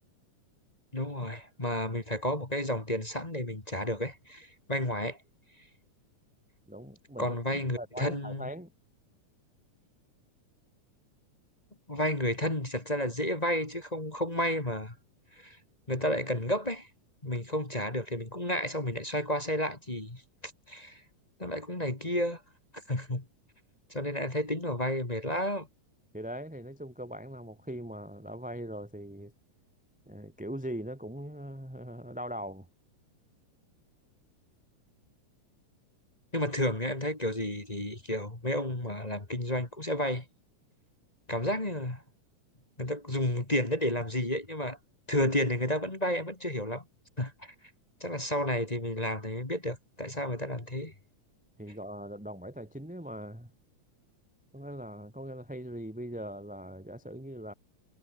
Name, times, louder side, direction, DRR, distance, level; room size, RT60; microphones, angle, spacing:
voice 1, 0.9-5.2 7.2-8.5 11.9-15.0 15.4-15.6 15.9-16.9 17.2-21.0 21.4-22.4 22.9-23.3 23.9-25.7 36.3-40.2 41.3-42.0 42.8-44.8 45.1-46.8 47.2-47.5 48.0-50.9, left 1 dB, 15° left, 2.0 m, -31 dB
voice 2, 6.7-8.7 26.1-29.3 30.1-32.7 51.6-53.5 54.5-57.5, equal, 5° right, 1.5 m, -41 dB
omnidirectional pair, 3.5 m